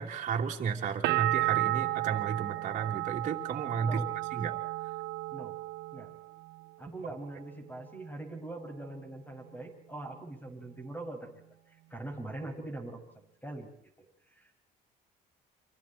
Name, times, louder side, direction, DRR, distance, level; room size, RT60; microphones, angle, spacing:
voice 1, 0.0-4.0 4.3-4.5, right 6 dB, 50° right, -1 dB, 2.9 m, -33 dB
sound 1, 1.0-6.7 7.0-7.7, right 19 dB, 90° right, 0.9 m, -33 dB
voice 2, 3.8-4.1 5.3-5.5 5.9-6.1 6.8-11.4 11.9-13.7 14.0-14.1 14.3-14.6, right 2 dB, 10° left, 3 dB, 6.5 m, -42 dB
30.0 x 25.5 x 4.4 m, 0.71 s
cardioid pair, 110°, 17 cm